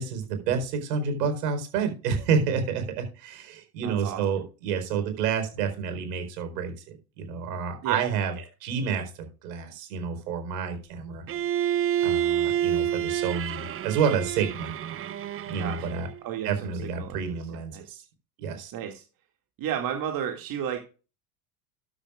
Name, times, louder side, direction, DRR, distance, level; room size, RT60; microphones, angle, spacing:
voice 1, 0.0-8.3 8.6-9.1 9.4-11.2 12.0-14.7 15.5-16.1 16.4-18.0 18.4-18.7, right 6 dB, 75° right, 7 dB, 4.4 m, -29 dB
voice 2, 3.8-4.2 7.8-8.0 15.6-17.8 18.7-19.0 19.6-20.8, right 9 dB, 45° right, 4 dB, 2.3 m, -33 dB
Bowed string instrument, 11.3-16.2, right 11 dB, 25° right, 0.8 m, -28 dB
12.5 x 10.5 x 2.4 m, 0.33 s
hypercardioid pair, 90°, 49 cm